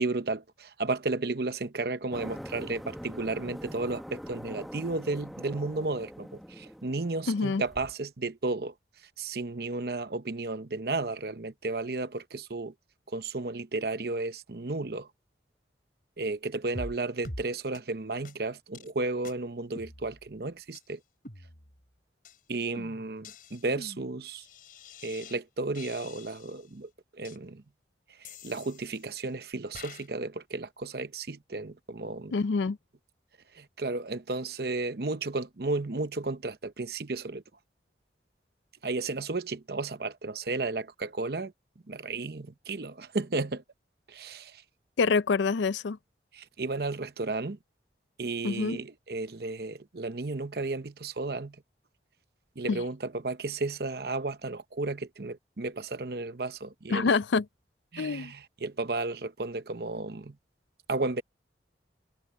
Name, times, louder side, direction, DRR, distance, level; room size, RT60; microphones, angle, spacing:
voice 1, 0.0-8.7 9.2-12.7 13.1-15.1 16.2-21.0 22.5-24.4 25.0-27.6 28.2-32.3 33.5-37.4 38.8-41.5 41.9-43.6 44.1-44.6 46.3-47.6 48.2-51.6 52.6-57.1 57.9-60.4 60.9-61.2, right 3 dB, 60° right, 0.9 m, -33 dB
sound 1, 2.1-7.9, equal, ahead, 1.2 m, -43 dB
voice 2, 7.3-7.6 32.3-32.8 45.0-46.0 48.4-48.8 52.7-52.8 56.9-57.5 58.0-58.3, left 4 dB, 80° left, 0.5 m, -26 dB
sound 2, 16.7-17.0 17.2-17.4 17.7-17.8 18.2-18.3 18.7-18.9 19.2-19.3 19.7-20.4 20.7-20.8 21.2-21.9 22.2-22.4 22.7-25.4 25.7-26.7 27.2-27.4 28.2-29.2 29.7-30.1, left 2 dB, 50° left, 5.9 m, -45 dB
head